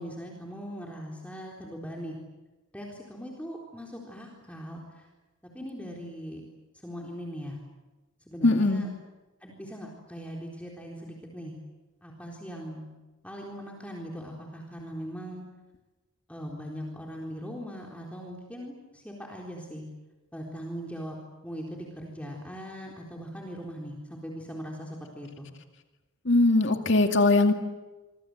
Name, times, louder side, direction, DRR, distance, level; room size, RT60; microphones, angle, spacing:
voice 1, 0.0-2.2 2.7-5.1 5.5-6.4 6.8-7.6 8.3-8.9 9.4-11.6 12.0-12.9 13.2-15.5 16.3-19.8 20.3-21.2 21.4-25.5, equal, 5° left, -1 dB, 4.0 m, -40 dB
voice 2, 8.4-8.8 26.3-27.5, left 2 dB, 60° left, 5 dB, 2.3 m, -21 dB
28.5 x 25.0 x 8.0 m, 1.1 s
head